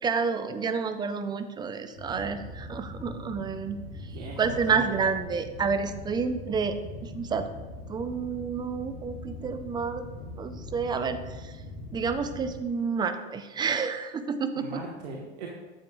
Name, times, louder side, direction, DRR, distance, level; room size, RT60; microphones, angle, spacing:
voice 1, 0.0-7.5 7.9-10.0 10.4-11.6 11.9-14.8, right 5 dB, 15° right, 10 dB, 0.3 m, -30 dB
sound 1, 1.9-12.6, left 2 dB, 85° left, 2.5 m, -42 dB
voice 2, 4.1-5.0 14.5-15.5, right 3 dB, 80° right, -2 dB, 1.2 m, -39 dB
9.6 x 7.6 x 2.3 m, 1.2 s
hypercardioid pair, 110°, 33 cm